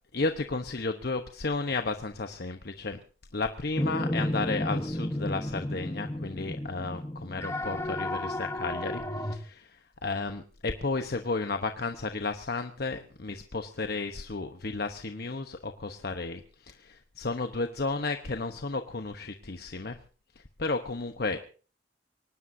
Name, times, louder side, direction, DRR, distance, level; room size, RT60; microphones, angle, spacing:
voice 1, 0.1-3.0 3.3-20.0 20.4-21.4, left 3 dB, 60° left, 6 dB, 1.0 m, -33 dB
sound 1, 3.8-9.4, left 1 dB, 15° left, 1.1 m, -32 dB
24.0 x 19.0 x 2.7 m, 0.38 s
head